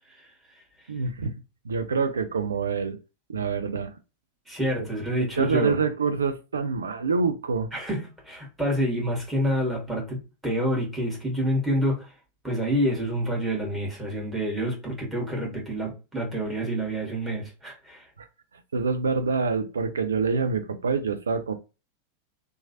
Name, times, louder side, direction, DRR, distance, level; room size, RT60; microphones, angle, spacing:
voice 1, 0.9-1.3 1.6-3.0 3.3-3.9 4.8-4.9 5.4-7.7 18.2-18.3 18.7-21.5, right 5 dB, 70° right, 0.4 m, -26 dB
voice 2, 4.5-5.8 7.7-12.1 12.4-18.1, equal, 5° right, 1.4 m, -28 dB
3.0 x 2.3 x 2.7 m
figure-of-eight pair, 90°, 0 cm